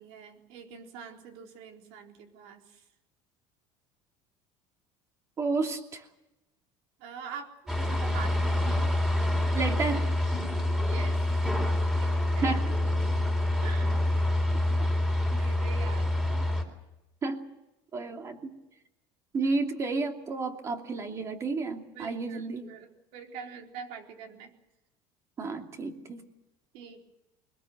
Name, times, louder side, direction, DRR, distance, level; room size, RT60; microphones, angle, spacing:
voice 1, 0.0-2.8 7.0-8.9 10.1-10.5 10.7-11.2 12.0-12.5 13.6-14.2 14.5-14.9 15.3-16.1 21.9-22.4 22.7-24.5 26.7-27.0, right 6 dB, 70° right, 3 dB, 4.0 m, -45 dB
voice 2, 5.4-6.1 7.8-8.0 9.5-10.1 12.4-12.7 16.3-16.5 17.2-17.4 17.9-18.6 19.3-22.7 25.4-26.3, right 3 dB, 25° right, 4 dB, 2.8 m, -31 dB
sound 1, 7.7-16.6, left 1 dB, 5° right, 4.0 m, -27 dB
23.0 x 20.5 x 7.9 m, 0.95 s
cardioid pair, 145°, 11 cm